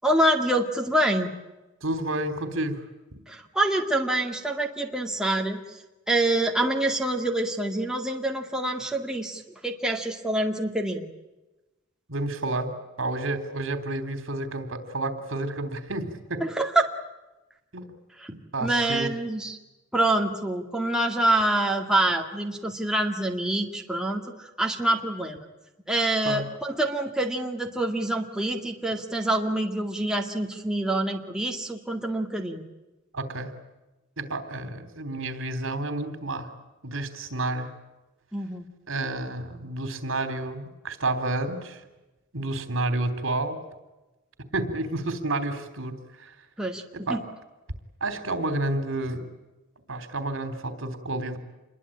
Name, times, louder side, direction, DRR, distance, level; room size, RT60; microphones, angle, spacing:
voice 1, 0.0-1.3 3.3-5.6 6.1-11.1 16.4-16.9 18.2-18.3 18.6-19.6 19.9-25.4 25.9-32.6 38.3-38.7 46.6-47.2, right 1 dB, 5° right, 1 dB, 2.2 m, -26 dB
voice 2, 1.8-2.9 12.1-12.7 13.0-16.4 17.7-17.9 18.3-19.1 26.2-26.5 33.1-33.5 34.2-36.5 36.8-37.7 38.9-41.8 42.3-43.6 44.5-46.3 46.9-47.2 48.0-49.3 49.9-51.4, right 2 dB, 70° right, 10 dB, 3.5 m, -30 dB
27.5 x 22.5 x 8.8 m, 1.1 s
head